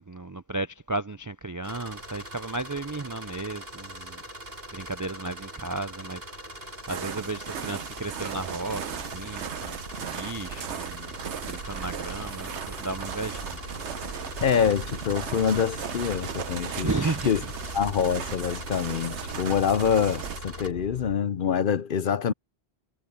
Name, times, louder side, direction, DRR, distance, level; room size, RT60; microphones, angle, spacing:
voice 1, 0.0-4.2 4.7-6.2 6.9-11.1 11.4-13.6 16.8-17.3, right 2 dB, 30° right, 0.3 m, -34 dB
sound 1, 1.6-20.7, equal, 60° right, 4.6 m, -42 dB
sound 2, 5.4-5.5 6.0-21.2, left 2 dB, 85° left, 2.4 m, -44 dB
sound 3, 6.9-20.4, right 8 dB, 90° right, 1.1 m, -37 dB
voice 2, 14.4-16.9 17.3-17.4 17.7-22.3, left 7 dB, 55° left, 0.8 m, -25 dB
omnidirectional pair, 1.1 m